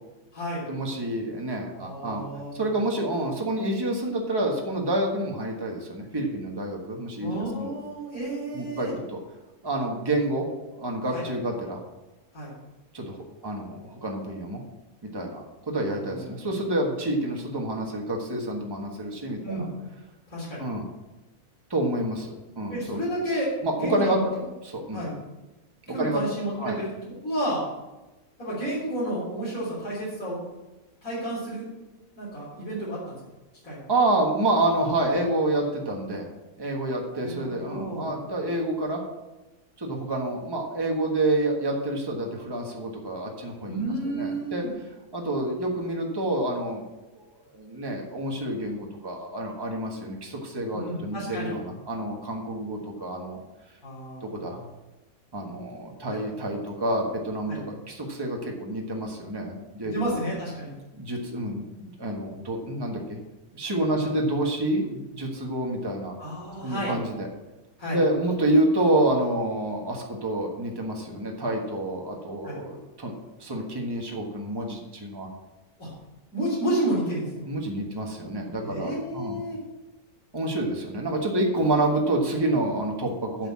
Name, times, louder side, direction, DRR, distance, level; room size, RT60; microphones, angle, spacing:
voice 1, 0.7-2.2 2.5-7.7 8.5-9.2 9.6-10.5 10.7-11.8 12.9-13.2 13.4-14.6 15.1-19.6 20.6-20.9 21.7-23.0 23.6-24.4 24.6-25.0 26.0-26.2 26.6-26.8 33.9-36.3 36.6-39.0 39.8-43.7 44.1-44.6 45.1-47.2 47.5-53.4 54.2-54.6 55.3-60.2 61.0-63.2 63.5-66.1 66.6-67.3 67.9-75.3 77.4-79.4 80.3-83.5, right 1 dB, 15° right, 1 dB, 1.4 m, -28 dB
voice 2, 1.7-2.8 7.2-8.9 11.1-11.2 12.3-12.5 15.9-16.4 19.4-19.7 20.3-20.6 22.7-24.2 24.9-25.2 25.9-26.9 27.2-27.6 28.4-30.4 31.0-31.7 32.2-33.2 33.6-33.8 37.1-38.2 43.7-44.7 50.7-51.5 53.8-54.6 56.1-56.2 57.5-57.6 59.8-60.7 64.0-64.1 66.2-67.0 67.8-68.0 72.4-72.6 75.8-75.9 76.3-77.5 78.6-79.6, right 1 dB, 75° left, -9 dB, 3.9 m, -31 dB
7.9 x 6.5 x 7.4 m, 1.1 s
omnidirectional pair, 1.5 m